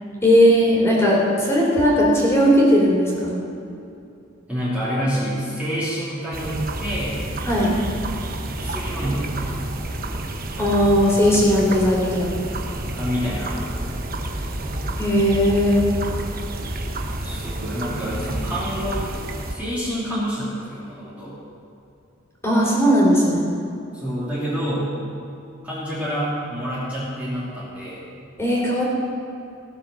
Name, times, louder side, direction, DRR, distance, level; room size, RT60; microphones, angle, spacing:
voice 1, 0.2-3.4 7.5-7.7 10.6-12.3 15.0-15.9 22.4-23.5 28.4-28.8, equal, 15° left, -5 dB, 3.6 m, -17 dB
voice 2, 4.5-7.2 8.6-9.6 13.0-13.6 17.2-19.1 19.5-21.4 23.9-24.9 25.6-28.0, equal, 10° right, -10 dB, 2.9 m, -27 dB
sound 1, 6.3-19.5, right 1 dB, 50° right, 1.0 m, -29 dB
17.0 x 7.4 x 6.4 m, 2.6 s
head